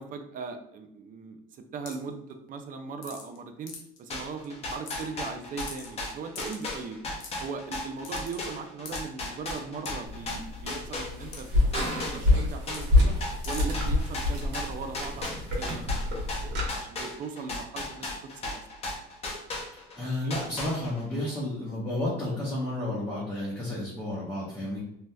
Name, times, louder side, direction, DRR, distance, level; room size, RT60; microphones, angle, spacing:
voice 1, 0.0-3.7 4.0-7.0 7.4-11.5 11.8-13.2 13.5-16.1 16.4-18.6, right 5 dB, 45° right, 7 dB, 0.5 m, -39 dB
sound 1, 1.9-2.1 3.0-3.4 3.7-4.0 4.4-4.5 4.7-5.3 5.6-5.9 6.3-6.7 7.2-7.4 8.0-8.4 8.8-9.0 9.8-9.9 11.3-11.4 11.7-11.8 12.7-12.9 13.4-13.6, left 5 dB, 80° left, 0.7 m, -42 dB
sound 2, 4.1-11.4 11.7-20.0 20.3-21.1, left 2 dB, 30° left, 0.7 m, -36 dB
sound 3, 10.1-16.7, left 2 dB, 65° right, 1.3 m, -27 dB
voice 2, 20.0-24.8, left 1 dB, 10° left, -9 dB, 1.0 m, -31 dB
3.1 x 2.8 x 2.3 m, 0.74 s
cardioid pair, 125°, 19 cm